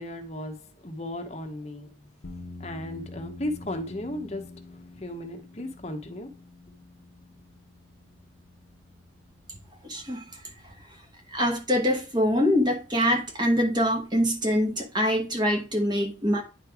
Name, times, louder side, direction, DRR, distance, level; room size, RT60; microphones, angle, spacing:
voice 1, 0.0-1.9 2.6-4.6 5.0-6.3, left 1 dB, 35° left, 0.9 m, -35 dB
sound 1, 2.2-14.7, left 2 dB, 65° left, 0.9 m, -48 dB
voice 2, 9.8-10.3 10.6-10.7 11.3-16.4, equal, 20° right, 1.1 m, -24 dB
9.9 x 3.3 x 4.7 m
head